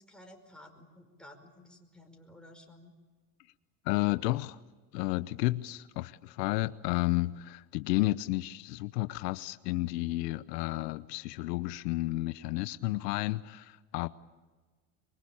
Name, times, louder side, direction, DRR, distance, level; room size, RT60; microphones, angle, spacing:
voice 1, 0.0-2.9, left 1 dB, ahead, 5.0 m, -54 dB
voice 2, 3.8-4.6 4.9-14.1, left 19 dB, 85° left, 0.9 m, -31 dB
25.5 x 23.5 x 8.6 m
supercardioid pair, 110°, 48 cm